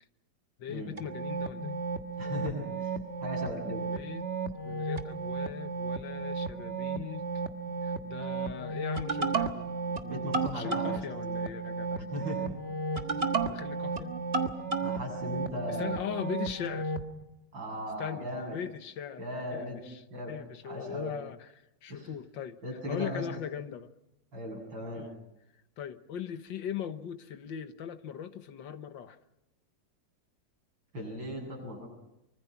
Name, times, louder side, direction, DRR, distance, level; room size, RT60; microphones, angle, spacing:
voice 1, 0.6-1.8 3.9-4.3 4.6-7.3 7.8-10.0 10.5-12.1 13.5-14.1 15.7-16.9 18.0-22.6 22.9-23.9 24.9-25.2 25.8-29.2, left 9 dB, 80° left, 9 dB, 1.9 m, -40 dB
sound 1, 1.0-17.1, right 4 dB, 35° right, 1.6 m, -33 dB
voice 2, 2.2-2.9 3.2-3.8 10.0-11.0 12.0-12.4 14.8-16.2 17.5-18.6 19.2-19.8 20.1-20.4 20.6-21.1 21.9-22.1 22.6-23.3 24.3-25.1 30.9-31.9, left 1 dB, 90° right, 1 dB, 8.9 m, -37 dB
25.0 x 25.0 x 5.9 m, 0.87 s
omnidirectional pair, 2.0 m